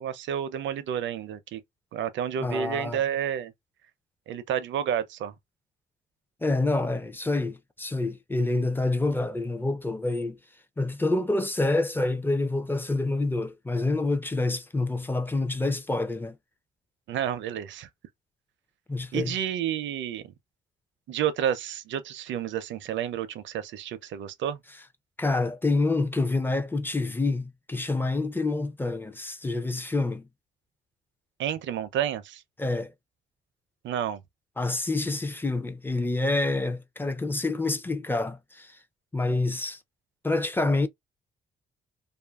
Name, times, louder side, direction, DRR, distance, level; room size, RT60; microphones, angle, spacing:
voice 1, 0.0-1.6 1.9-3.5 4.3-5.3 17.1-17.9 19.1-20.2 21.1-24.6 31.4-32.4 33.8-34.2, right 9 dB, 70° right, 0.5 m, -30 dB
voice 2, 2.4-3.0 6.4-10.4 10.8-16.4 18.9-19.3 25.2-30.3 32.6-32.9 34.6-38.8 39.1-39.8 40.2-40.9, left 2 dB, 10° left, 0.4 m, -27 dB
2.6 x 2.4 x 2.3 m
cardioid pair, 90°, 20 cm